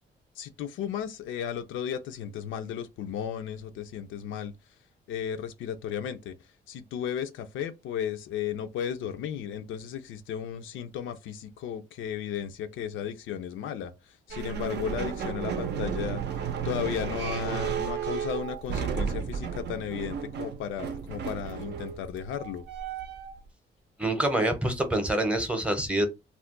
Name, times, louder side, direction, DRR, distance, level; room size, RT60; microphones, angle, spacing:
voice 1, 0.4-4.5 5.1-6.4 6.7-16.2 16.6-22.7, left 9 dB, 80° left, 0.4 m, -34 dB
sound 1, 14.3-23.4, right 7 dB, 60° right, 0.5 m, -33 dB
voice 2, 24.0-26.1, right 1 dB, 5° right, 0.7 m, -26 dB
2.3 x 2.1 x 3.6 m
cardioid pair, 90°, 20 cm